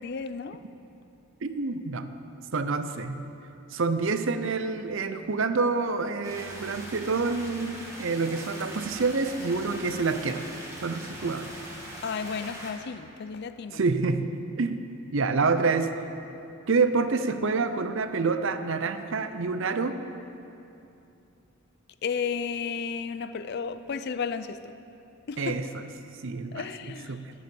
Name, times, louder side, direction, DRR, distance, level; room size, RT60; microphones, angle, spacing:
voice 1, 0.0-0.6 12.0-13.8 22.0-24.7 25.3-25.6 26.5-27.3, left 6 dB, 45° left, 12 dB, 0.4 m, -33 dB
voice 2, 1.4-2.1 2.5-3.2 3.7-10.4 10.8-11.5 13.7-14.3 14.6-14.8 15.1-15.9 16.7-20.0 25.4-25.6 26.2-26.7 27.1-27.3, right 4 dB, 60° right, 10 dB, 0.6 m, -27 dB
sound 1, 6.2-12.7, right 1 dB, 15° right, 1.5 m, -41 dB
10.0 x 9.4 x 7.0 m, 2.8 s
head